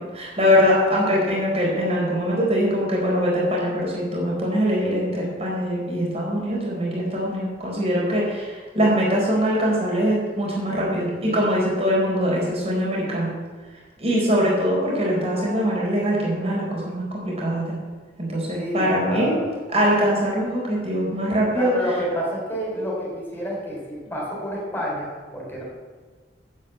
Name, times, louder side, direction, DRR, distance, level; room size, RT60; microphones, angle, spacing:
voice 1, 0.0-13.3 14.0-17.8 18.2-19.4 19.7-21.7, equal, 35° right, -3 dB, 4.4 m, -22 dB
voice 2, 18.5-19.5 21.5-25.6, equal, 10° left, -4 dB, 4.0 m, -29 dB
9.4 x 9.0 x 8.4 m, 1.4 s
head